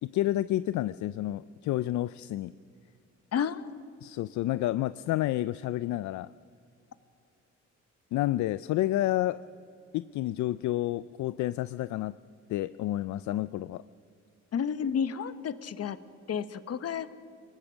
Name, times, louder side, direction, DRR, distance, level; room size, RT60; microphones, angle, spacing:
voice 1, 0.0-2.5 4.0-6.3 8.1-9.4 9.9-12.1 12.5-13.8, left 15 dB, 75° left, 16 dB, 0.5 m, -30 dB
voice 2, 3.3-3.6 14.5-16.0 16.3-17.1, left 7 dB, 55° left, 13 dB, 1.1 m, -31 dB
24.5 x 19.5 x 6.3 m, 2.4 s
cardioid pair, 90°, 30 cm